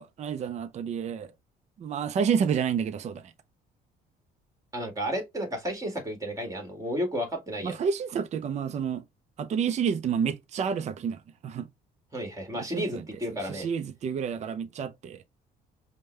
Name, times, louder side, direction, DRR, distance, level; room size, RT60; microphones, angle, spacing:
voice 1, 0.0-1.3 1.8-3.3 7.6-9.0 9.4-11.7 12.5-13.0 13.5-15.2, right 7 dB, 40° right, 0.6 m, -29 dB
voice 2, 4.7-7.8 12.1-13.7, equal, 20° right, 2.0 m, -32 dB
5.2 x 2.2 x 3.2 m
cardioid pair, 110°, 17 cm